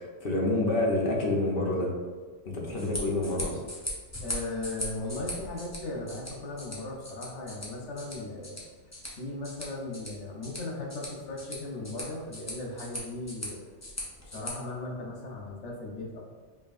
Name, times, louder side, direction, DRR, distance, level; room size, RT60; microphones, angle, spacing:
voice 1, 0.0-1.9 2.4-3.6, left 2 dB, 60° left, -2 dB, 0.9 m, -28 dB
sound 1, 2.6-14.5, left 1 dB, 20° left, 0.6 m, -40 dB
voice 2, 4.2-8.6 9.1-13.7 14.2-16.2, left 2 dB, 85° left, -2 dB, 1.2 m, -37 dB
5.1 x 2.6 x 2.5 m, 1.4 s
omnidirectional pair, 1.2 m